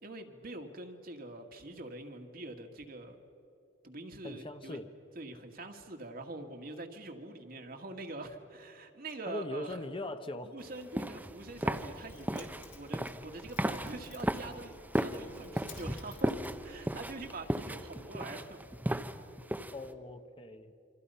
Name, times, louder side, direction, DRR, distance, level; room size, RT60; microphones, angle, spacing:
voice 1, 0.0-3.2 3.8-4.8 5.2-9.8 10.5-16.4 16.6-18.6, right 2 dB, 55° right, 4 dB, 2.0 m, -44 dB
voice 2, 4.2-4.9 9.3-10.6 19.7-20.7, left 2 dB, 30° left, 8 dB, 1.0 m, -40 dB
sound 1, 10.7-19.9, right 1 dB, 10° right, 0.8 m, -36 dB
Keys jangling, 11.5-17.5, left 4 dB, 70° left, 3.2 m, -56 dB
28.0 x 25.0 x 5.6 m, 2.8 s
head